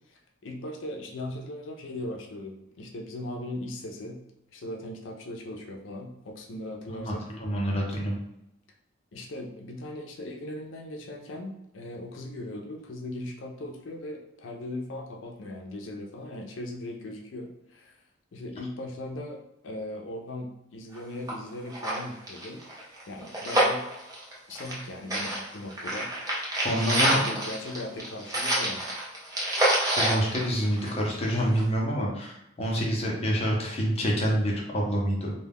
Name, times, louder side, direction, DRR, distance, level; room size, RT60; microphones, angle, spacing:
voice 1, 0.1-4.2 4.5-7.3 9.1-18.0 18.3-22.6 23.1-23.8 24.5-26.1 27.1-28.9, left 1 dB, 85° left, 1 dB, 0.5 m, -38 dB
voice 2, 6.9-8.2 26.6-27.2 30.0-35.3, equal, 35° left, -2 dB, 0.6 m, -27 dB
sound 1, 20.9-21.0 21.3-21.4 21.7-24.8 25.1-31.2 31.6-31.7, right 1 dB, 20° right, 0.7 m, -27 dB
2.2 x 2.2 x 3.4 m, 0.86 s
head